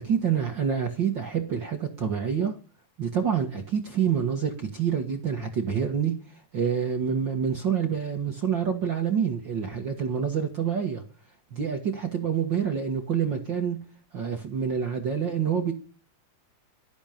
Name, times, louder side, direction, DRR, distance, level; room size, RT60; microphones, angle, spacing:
voice 1, 0.0-2.6 3.0-11.0 11.5-13.8 14.1-15.7, right 7 dB, 45° right, 2.1 m, -27 dB
18.0 x 12.5 x 5.1 m
omnidirectional pair, 3.3 m